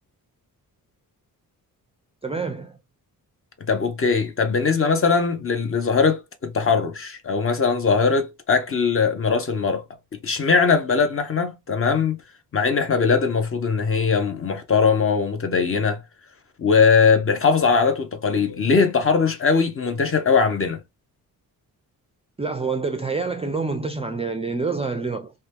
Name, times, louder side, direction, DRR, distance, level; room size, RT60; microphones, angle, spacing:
voice 1, 2.2-2.8 22.4-25.3, right 4 dB, 15° right, 0.4 m, -27 dB
voice 2, 3.7-9.8 10.2-12.2 12.5-16.0 16.6-20.8, left 5 dB, 35° left, 0.7 m, -20 dB
2.8 x 2.2 x 3.2 m
wide cardioid pair, 130°, 36 cm